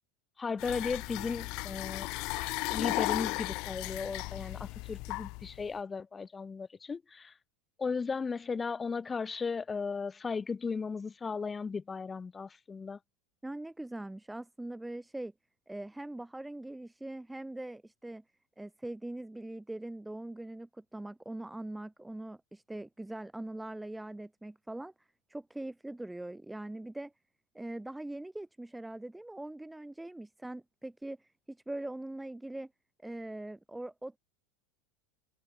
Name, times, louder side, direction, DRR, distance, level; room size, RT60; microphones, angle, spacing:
voice 1, 0.4-2.1 2.7-7.3 7.8-13.0, left 5 dB, 20° left, 3.1 m, -36 dB
sound 1, 0.6-5.7, left 26 dB, 60° left, 2.6 m, -35 dB
voice 2, 13.4-15.3 15.7-18.2 18.6-24.9 25.3-27.1 27.5-32.7 33.0-34.2, right 1 dB, 5° right, 2.5 m, -42 dB
supercardioid pair, 110°, 0 cm